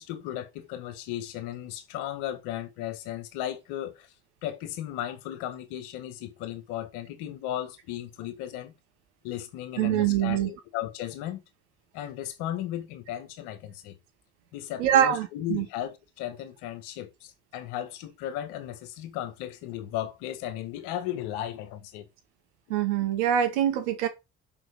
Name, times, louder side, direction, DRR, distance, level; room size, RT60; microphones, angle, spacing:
voice 1, 0.0-4.1 4.4-8.7 9.2-11.4 11.9-13.9 14.5-22.1, left 12 dB, 80° left, 1.7 m, -35 dB
voice 2, 9.8-10.5 14.8-15.7 22.7-24.1, right 10 dB, 85° right, 1.9 m, -24 dB
6.2 x 6.0 x 6.3 m
hypercardioid pair, 55°, 34 cm